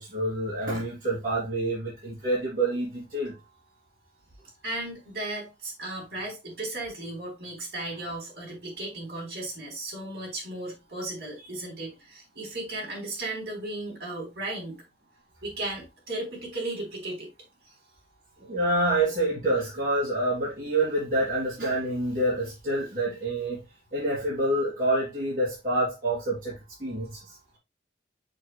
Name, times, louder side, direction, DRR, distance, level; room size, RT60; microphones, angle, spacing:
voice 1, 0.0-3.3 18.4-23.6 23.9-27.6, right 1 dB, 55° right, 2.8 m, -27 dB
voice 2, 4.6-14.8 15.4-17.3, right 2 dB, 70° right, 3.9 m, -35 dB
7.2 x 6.5 x 2.2 m
head